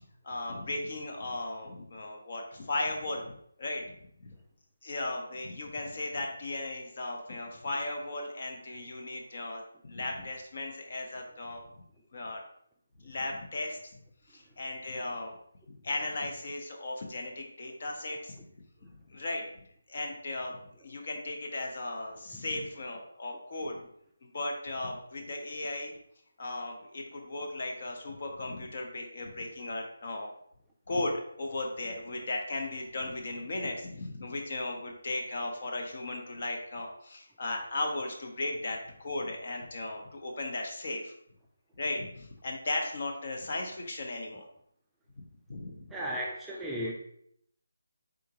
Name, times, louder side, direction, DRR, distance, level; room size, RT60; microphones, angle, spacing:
voice 1, 0.0-4.3 4.8-11.6 12.1-12.4 13.0-13.9 14.3-15.4 15.7-18.4 18.8-19.4 19.9-20.5 20.8-23.8 24.2-25.9 26.4-30.3 30.9-41.1 41.7-44.5 45.2-45.3 45.5-45.9, left 2 dB, 45° left, 2 dB, 0.8 m, -36 dB
voice 2, 45.9-46.9, equal, 5° right, -4 dB, 0.3 m, -34 dB
3.8 x 3.5 x 2.9 m, 0.70 s
figure-of-eight pair, 165°, 0 cm